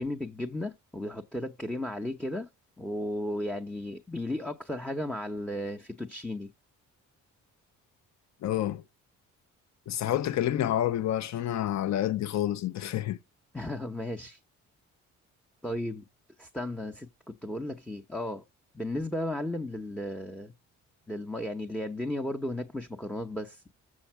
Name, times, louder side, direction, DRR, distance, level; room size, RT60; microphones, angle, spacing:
voice 1, 0.0-2.5 2.8-6.5 13.5-14.4 15.6-16.0 16.4-18.4 18.7-20.5 21.1-23.6, left 1 dB, 5° left, 0.8 m, -34 dB
voice 2, 8.4-8.8 9.9-13.2, left 12 dB, 65° left, 0.7 m, -28 dB
7.4 x 7.0 x 4.5 m
cardioid pair, 90°, 30 cm